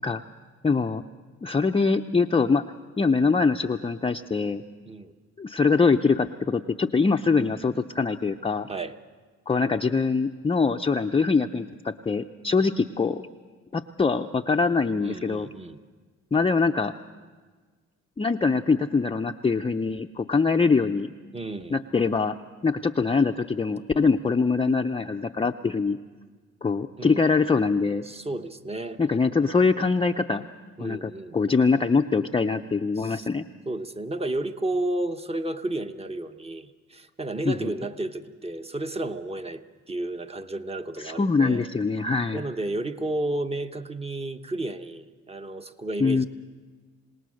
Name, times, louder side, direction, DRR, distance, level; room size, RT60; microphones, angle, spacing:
voice 1, 0.6-1.0 1.4-2.6 3.0-4.6 5.4-8.7 9.5-13.2 13.7-15.5 16.3-16.9 18.2-21.1 21.7-22.3 22.6-26.0 26.6-28.0 29.0-30.5 30.8-33.4 37.4-37.7 41.0-42.4 46.0-46.2, left 4 dB, 20° left, 4 dB, 0.6 m, -23 dB
voice 2, 15.0-15.8 21.3-21.8 27.0-27.3 28.0-29.0 30.8-31.4 33.0-33.3 33.7-41.6 42.3-46.3, right 2 dB, 20° right, 8 dB, 1.1 m, -32 dB
26.5 x 18.5 x 6.4 m, 1.4 s
cardioid pair, 90°, 30 cm